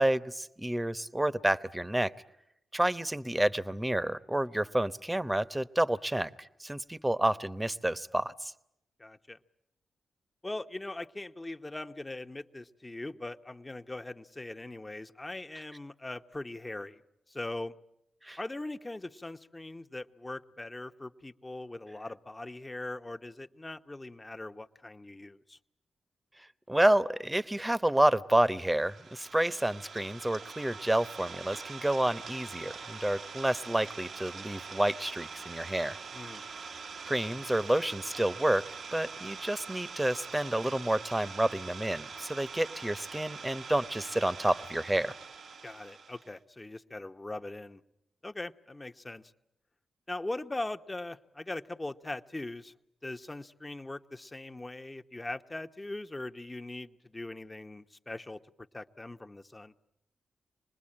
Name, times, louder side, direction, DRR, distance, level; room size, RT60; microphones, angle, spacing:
voice 1, 0.0-2.1 2.7-8.5 18.2-18.4 26.7-36.0 37.0-38.7 38.9-45.1, right 1 dB, 15° right, 14 dB, 0.9 m, -29 dB
voice 2, 9.0-9.4 10.4-17.0 17.3-17.7 18.4-25.6 36.1-36.4 45.6-47.8 48.2-49.2 50.1-52.7 53.0-58.4 58.7-59.7, left 2 dB, 25° left, 8 dB, 1.0 m, -40 dB
Idling, 28.6-46.3, right 5 dB, 65° right, 1.0 m, -44 dB
25.5 x 20.5 x 8.8 m, 0.79 s
supercardioid pair, 45°, 0 cm